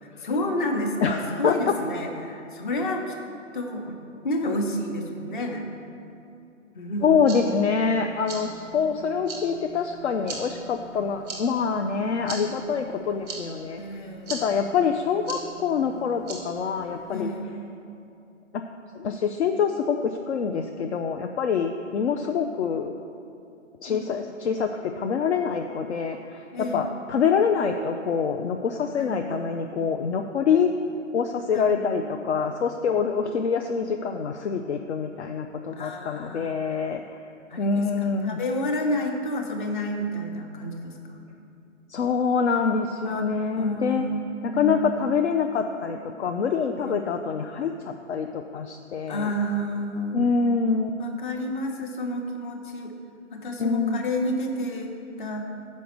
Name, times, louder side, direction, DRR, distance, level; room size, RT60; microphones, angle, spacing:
voice 1, 0.0-3.1 3.5-4.0 4.2-5.6 6.7-7.4 13.8-14.6 17.1-17.7 23.9-24.2 26.5-26.9 29.0-29.3 31.5-31.8 35.7-36.8 37.5-41.2 43.0-43.2 43.6-44.2 44.5-45.0 46.8-47.0 49.1-50.3 51.0-52.9 53.3-55.5, left 1 dB, 40° left, 3 dB, 0.9 m, -30 dB
voice 2, 1.0-1.7 7.0-13.8 14.3-17.3 18.5-18.6 18.9-22.9 23.8-30.7 31.1-37.0 37.6-38.4 41.9-44.1 44.4-49.3 50.1-51.0 53.6-54.0, left 6 dB, 65° left, 5 dB, 0.5 m, -25 dB
sound 1, 6.9-17.2, right 4 dB, 5° right, 0.6 m, -41 dB
6.4 x 5.2 x 6.6 m, 2.7 s
figure-of-eight pair, 135°, 38 cm